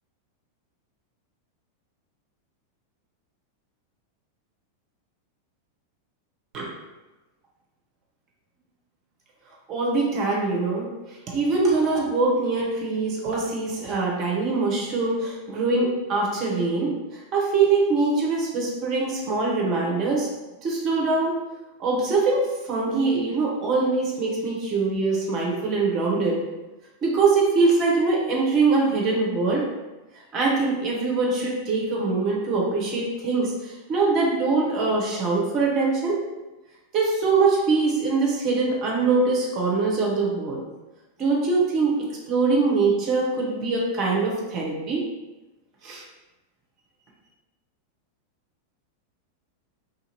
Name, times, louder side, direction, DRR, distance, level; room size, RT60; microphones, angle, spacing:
voice 1, 9.7-20.3 20.6-21.4 21.8-26.4 27.0-29.6 30.3-36.2 36.9-40.6 41.2-45.0 45.8-46.0, right 3 dB, 35° right, -2 dB, 0.9 m, -23 dB
2.9 x 2.7 x 2.8 m, 1.1 s
figure-of-eight pair, 90°, 0 cm